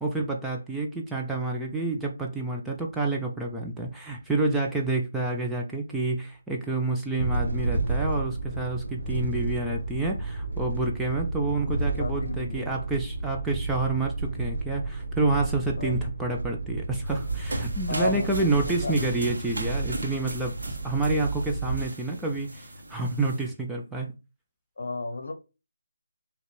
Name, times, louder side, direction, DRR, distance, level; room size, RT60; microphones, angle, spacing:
voice 1, 0.0-24.1, right 2 dB, 5° right, 0.4 m, -28 dB
sound 1, 7.2-21.9, right 3 dB, 85° right, 1.3 m, -32 dB
voice 2, 11.4-12.7 15.8-16.0 17.9-19.0 24.8-25.3, left 3 dB, 60° left, 0.8 m, -33 dB
sound 2, 17.1-23.5, right 1 dB, 65° right, 1.4 m, -38 dB
4.1 x 3.0 x 3.3 m
figure-of-eight pair, 160°, 0 cm